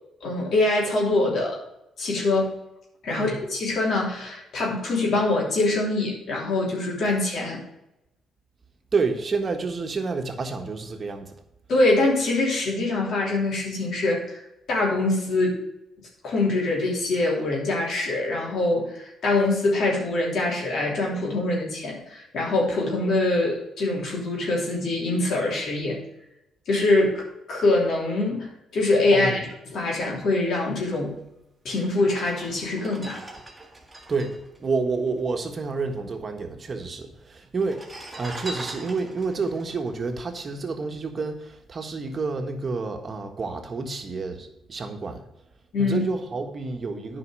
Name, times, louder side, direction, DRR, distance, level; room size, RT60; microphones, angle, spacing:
voice 1, 0.2-1.6 2.0-2.5 3.0-7.6 11.7-14.4 14.7-15.6 16.2-26.0 26.7-31.1 31.6-33.2 45.7-46.0, left 2 dB, 65° left, -2 dB, 3.1 m, -24 dB
voice 2, 8.9-11.3 29.1-29.4 34.1-37.8 38.1-45.2 45.8-47.2, right 4 dB, 40° right, 4 dB, 1.5 m, -29 dB
sound 1, 31.3-31.4 31.9-35.6 35.9-36.0 36.1-36.8 37.5-41.0 41.5-41.7, right 1 dB, 10° right, 1.8 m, -41 dB
9.7 x 5.2 x 6.4 m, 0.86 s
cardioid pair, 90°, 0 cm